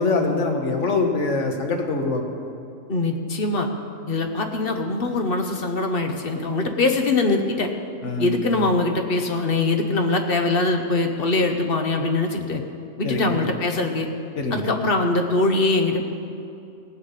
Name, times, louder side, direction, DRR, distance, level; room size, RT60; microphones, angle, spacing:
voice 1, 0.0-2.2 8.0-8.4 13.0-13.4 14.4-14.7, left 3 dB, 65° left, 3 dB, 1.6 m, -24 dB
voice 2, 2.9-3.7 4.1-7.7 8.2-12.6 13.0-14.1 14.5-16.1, left 2 dB, 50° left, 4 dB, 1.1 m, -22 dB
17.0 x 5.7 x 8.2 m, 2.6 s
omnidirectional pair, 1.4 m